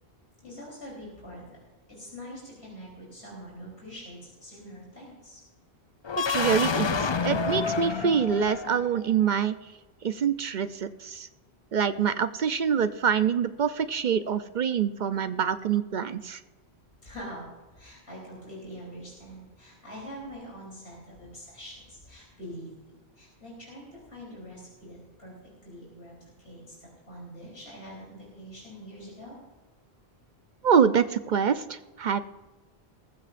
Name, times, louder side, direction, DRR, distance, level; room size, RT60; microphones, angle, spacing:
voice 1, 0.4-1.6 1.9-5.4 17.0-29.4, equal, 80° left, -4 dB, 3.8 m, -44 dB
sound 1, 6.0-9.0, left 5 dB, 40° left, 0.4 m, -28 dB
voice 2, 6.2-9.6 10.0-11.3 11.7-16.4 30.6-32.2, right 7 dB, 55° right, 12 dB, 0.6 m, -25 dB
19.5 x 15.0 x 2.5 m, 1.2 s
omnidirectional pair, 1.1 m